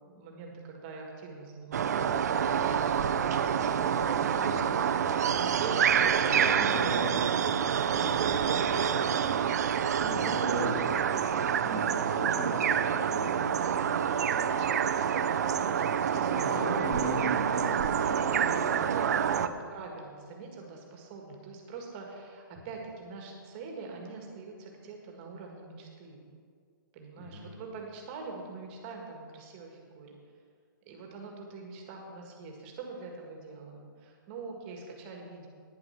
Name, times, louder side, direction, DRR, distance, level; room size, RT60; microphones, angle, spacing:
voice 1, 0.1-2.1 2.5-3.5 4.0-4.7 5.6-7.2 7.9-9.5 10.2-11.4 11.7-12.1 14.1-16.7 17.0-17.2 17.7-19.1 19.4-26.2 26.9-30.1 30.9-35.5, right 4 dB, 25° right, 1 dB, 1.7 m, -43 dB
sound 1, 1.7-19.5, right 8 dB, 50° right, 0.6 m, -27 dB
voice 2, 4.4-5.6 5.9-9.3 10.0-10.8 11.6-14.1 16.3-18.9 19.2-19.4 27.2-27.5, right 1 dB, 25° left, -10 dB, 2.9 m, -38 dB
11.0 x 9.9 x 5.8 m, 2.1 s
hypercardioid pair, 165°, 11 cm